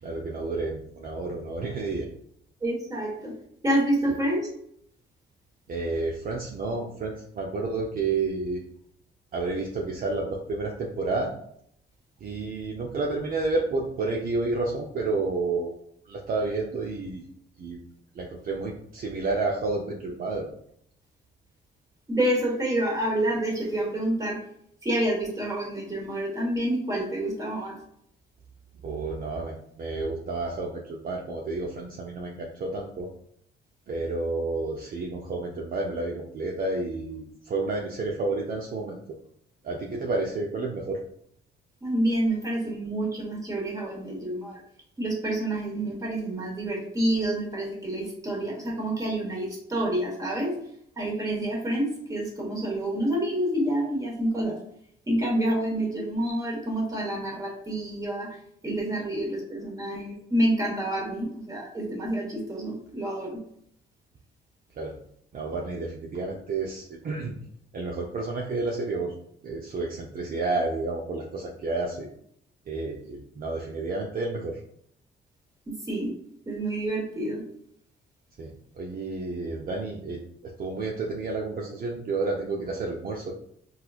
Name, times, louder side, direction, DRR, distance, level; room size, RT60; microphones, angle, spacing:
voice 1, 0.0-2.1 5.7-8.6 9.3-11.3 12.2-15.7 16.1-17.2 17.6-17.8 18.1-20.5 28.8-33.1 33.9-39.2 39.6-41.0 64.8-65.0 65.3-67.4 67.7-69.1 69.4-72.1 72.7-74.6 78.4-83.3, right 3 dB, 45° right, -2 dB, 0.6 m, -30 dB
voice 2, 2.6-3.3 3.6-4.5 22.1-24.4 24.8-27.8 41.8-44.6 45.0-50.5 51.0-54.6 55.1-58.3 58.6-63.4 75.9-76.1 76.5-77.4, right 1 dB, 15° right, -2 dB, 1.3 m, -28 dB
4.1 x 2.4 x 2.4 m, 0.69 s
cardioid pair, 90°, 20 cm